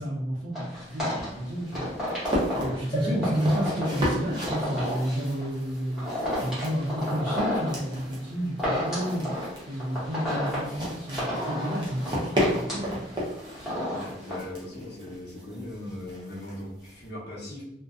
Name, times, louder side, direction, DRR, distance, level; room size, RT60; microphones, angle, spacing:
voice 1, 0.0-1.8 2.6-9.3 9.7-13.0, equal, 80° right, -6 dB, 0.6 m, -30 dB
sound 1, 0.5-14.4, equal, 5° right, 0.9 m, -32 dB
sound 2, 0.7-17.1, equal, 25° right, 0.5 m, -34 dB
sound 3, 2.9-6.6 7.2-7.3 7.5-7.6, right 2 dB, 25° left, 0.6 m, -41 dB
voice 2, 3.0-3.7 13.7-17.6, left 1 dB, 65° left, -5 dB, 0.7 m, -39 dB
2.6 x 2.1 x 2.3 m, 0.87 s
head